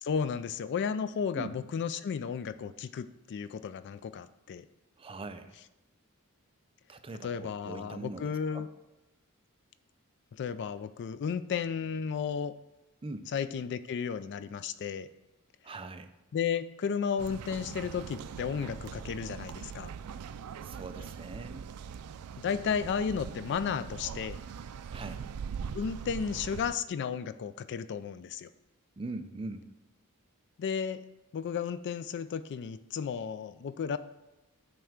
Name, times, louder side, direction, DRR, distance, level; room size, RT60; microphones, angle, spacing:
voice 1, 0.0-4.6 7.2-8.7 10.3-12.5 13.3-15.1 16.3-19.9 22.4-24.4 25.7-28.5 30.6-31.0 31.3-34.0, left 6 dB, 55° left, 13 dB, 0.3 m, -33 dB
voice 2, 5.0-5.6 6.9-8.7 13.0-13.3 15.6-16.1 20.6-21.7 24.9-25.2 29.0-29.7, right 2 dB, 25° right, 8 dB, 0.5 m, -41 dB
sound 1, 17.2-26.7, right 6 dB, 85° right, 0.4 m, -42 dB
8.9 x 3.4 x 6.4 m, 1.0 s
head